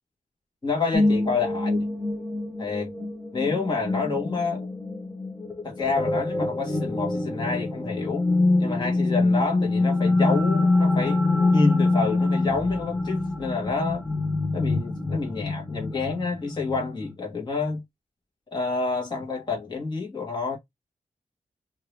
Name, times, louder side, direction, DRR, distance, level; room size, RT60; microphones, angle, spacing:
voice 1, 0.6-1.8 2.6-2.9 3.3-4.7 5.6-8.3 8.6-11.2 11.5-14.0 14.5-17.8 18.5-20.6, left 4 dB, 30° left, 1.4 m, -28 dB
sound 1, 0.9-17.1, left 2 dB, 5° left, 0.6 m, -25 dB
2.8 x 2.7 x 3.2 m
wide cardioid pair, 170°, 14 cm